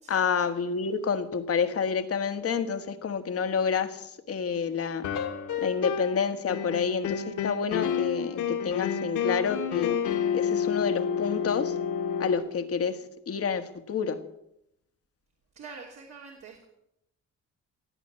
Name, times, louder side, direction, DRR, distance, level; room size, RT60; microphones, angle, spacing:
voice 1, 0.1-5.0 5.6-10.0 10.3-11.8 12.2-14.2, left 6 dB, 50° left, 9 dB, 1.5 m, -29 dB
sound 1, 5.0-6.2 6.5-12.4, left 7 dB, 85° left, 1.9 m, -29 dB
voice 2, 15.5-16.7, right 5 dB, 60° right, 0 dB, 2.9 m, -45 dB
17.5 x 8.5 x 7.6 m, 0.81 s
cardioid pair, 90°, 30 cm